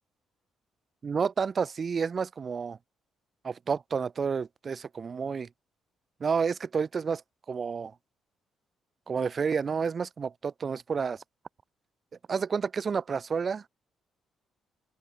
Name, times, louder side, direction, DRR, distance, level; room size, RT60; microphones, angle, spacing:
voice 1, 1.0-2.8 3.4-5.5 6.2-7.2 7.5-7.9 9.1-11.2 12.3-13.7, right 6 dB, 40° right, 1.9 m, -30 dB
cardioid pair, 90°, 0 cm